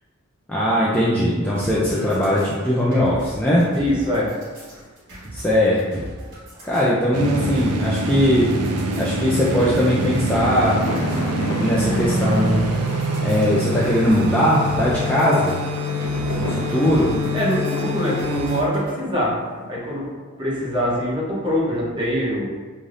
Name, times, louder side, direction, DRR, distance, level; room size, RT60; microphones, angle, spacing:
voice 1, 0.5-3.7 5.3-6.0 6.6-8.5 8.9-10.8 11.1-12.6 13.2-15.6 16.4-17.1, equal, 5° left, -8 dB, 0.3 m, -20 dB
sound 1, 1.5-18.9, equal, 60° right, 1.5 m, -40 dB
voice 2, 3.8-4.3 17.3-19.3 19.7-20.1 20.4-22.5, equal, 20° right, -6 dB, 0.7 m, -23 dB
sound 2, 7.1-18.7, right 1 dB, 85° right, 0.4 m, -25 dB
sound 3, 10.0-20.3, left 2 dB, 80° left, 0.4 m, -34 dB
3.2 x 2.6 x 2.4 m, 1.4 s
head